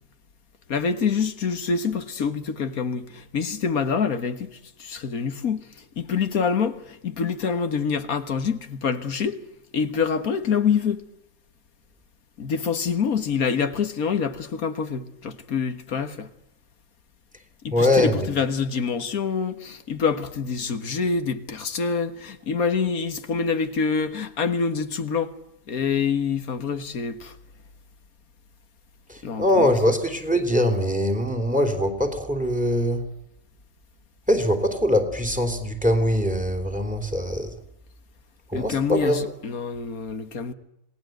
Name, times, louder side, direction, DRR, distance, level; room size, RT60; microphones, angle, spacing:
voice 1, 0.7-9.4 9.7-11.0 12.4-16.3 17.6-25.4 25.7-27.4 29.2-29.7 38.5-40.5, left 6 dB, 80° left, 1.9 m, -26 dB
voice 2, 17.7-18.3 29.1-33.0 34.3-37.5 38.5-39.3, left 1 dB, 5° right, 3.4 m, -22 dB
27.5 x 19.0 x 9.2 m
omnidirectional pair, 1.5 m